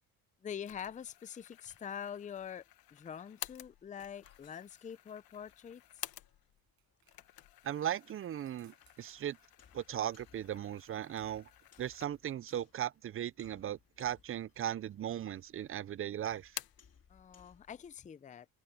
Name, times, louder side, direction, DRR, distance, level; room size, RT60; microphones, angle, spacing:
voice 1, 0.4-2.6 2.9-5.8 17.1-18.5, left 8 dB, 20° left, 0.5 m, -45 dB
sound 1, 0.6-6.6 7.0-12.4 12.9-13.0 13.8-14.5 14.8-15.5 15.8-16.9, left 14 dB, 75° left, 1.0 m, -51 dB
sound 2, 1.3-17.9, left 7 dB, 45° left, 4.3 m, -68 dB
sound 3, 2.8-15.8, right 12 dB, 70° right, 7.4 m, -79 dB
voice 2, 7.6-9.4 9.7-11.5 11.8-16.5, right 11 dB, 35° right, 0.4 m, -37 dB
cardioid pair, 110°, 36 cm